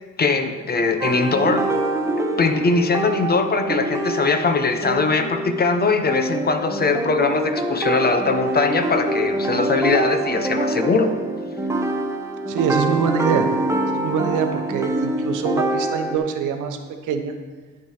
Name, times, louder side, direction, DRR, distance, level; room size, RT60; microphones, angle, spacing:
voice 1, 0.2-1.7 2.4-11.1, left 4 dB, 30° left, 7 dB, 0.8 m, -21 dB
sound 1, 1.0-16.2, right 1 dB, 10° right, 0.9 m, -25 dB
voice 2, 12.5-13.5 13.9-17.3, right 7 dB, 85° right, 6 dB, 0.9 m, -24 dB
11.0 x 4.7 x 4.9 m, 1.4 s
cardioid pair, 90°, 30 cm